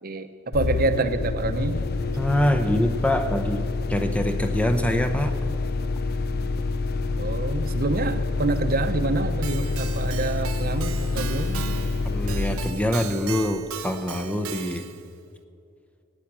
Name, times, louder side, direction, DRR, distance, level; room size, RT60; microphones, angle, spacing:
voice 1, 0.0-1.8 7.2-11.6, right 2 dB, 40° right, 9 dB, 0.8 m, -27 dB
sound 1, 0.5-14.0, left 3 dB, 45° left, 0.5 m, -27 dB
voice 2, 2.2-5.4 12.0-14.8, left 1 dB, 5° left, 7 dB, 0.7 m, -25 dB
Keyboard (musical), 9.4-15.1, right 8 dB, 75° right, 0.6 m, -37 dB
15.0 x 9.8 x 7.4 m, 2.6 s
head